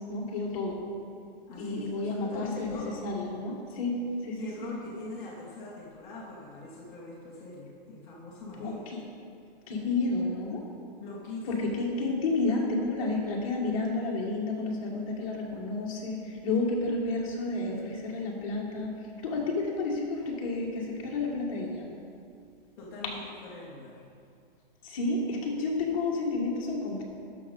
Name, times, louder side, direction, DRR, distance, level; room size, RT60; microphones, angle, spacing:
voice 1, 0.1-0.8 1.6-3.9 4.2-4.7 8.6-9.0 9.7-10.6 11.4-18.9 19.2-21.9 24.8-27.0, left 3 dB, 35° left, -2 dB, 1.5 m, -31 dB
voice 2, 1.5-3.0 4.3-8.9 11.0-11.5 22.8-24.0, left 2 dB, 10° left, -7 dB, 0.5 m, -42 dB
12.0 x 6.1 x 3.9 m, 2.4 s
hypercardioid pair, 170°, 29 cm